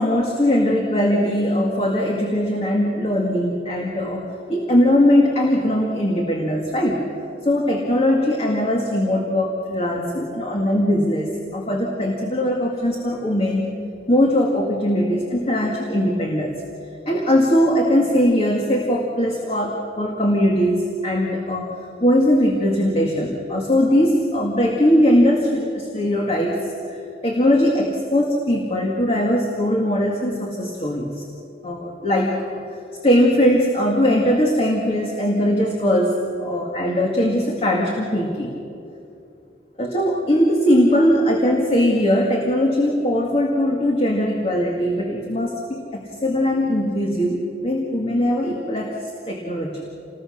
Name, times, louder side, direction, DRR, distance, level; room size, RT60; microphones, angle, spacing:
voice 1, 0.0-7.0 7.4-13.8 14.1-16.6 17.1-21.7 22.0-31.2 31.6-38.5 39.8-49.0 49.3-49.9, equal, 30° left, 0 dB, 2.1 m, -20 dB
27.5 x 20.5 x 6.5 m, 2.7 s
head